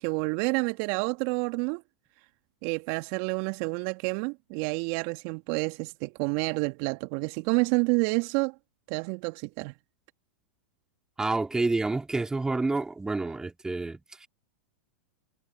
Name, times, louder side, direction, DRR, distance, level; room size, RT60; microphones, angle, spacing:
voice 1, 0.0-1.8 2.6-8.6 8.9-9.7, right 32 dB, 50° right, 1.8 m, -29 dB
voice 2, 11.2-14.3, right 3 dB, 10° right, 2.9 m, -29 dB
figure-of-eight pair, 100°, 7 cm